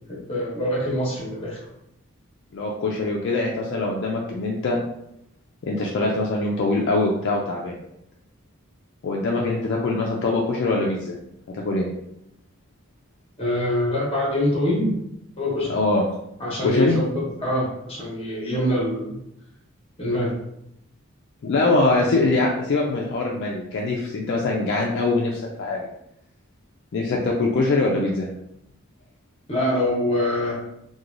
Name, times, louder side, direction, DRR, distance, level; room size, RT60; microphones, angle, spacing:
voice 1, 0.1-1.6 13.4-14.9 15.4-15.7 16.4-19.2 20.0-20.3 29.5-30.6, left 1 dB, 25° left, -4 dB, 0.9 m, -24 dB
voice 2, 2.5-4.8 5.6-7.8 9.0-11.1 11.5-11.9 15.7-16.0 16.6-17.0 21.4-25.9 26.9-28.3, left 2 dB, 55° left, -2 dB, 0.3 m, -23 dB
3.0 x 2.2 x 2.5 m, 0.79 s
head